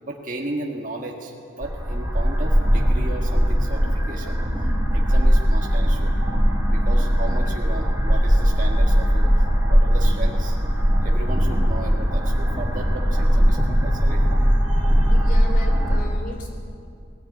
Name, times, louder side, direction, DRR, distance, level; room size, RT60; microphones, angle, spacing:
voice 1, 0.0-6.1 6.7-15.1, right 2 dB, 40° right, 0 dB, 1.6 m, -35 dB
sound 1, 1.6-16.0, equal, 15° right, 4.1 m, -19 dB
voice 2, 14.9-16.7, left 1 dB, 45° left, 3 dB, 3.5 m, -37 dB
20.0 x 18.5 x 9.4 m, 2.5 s
head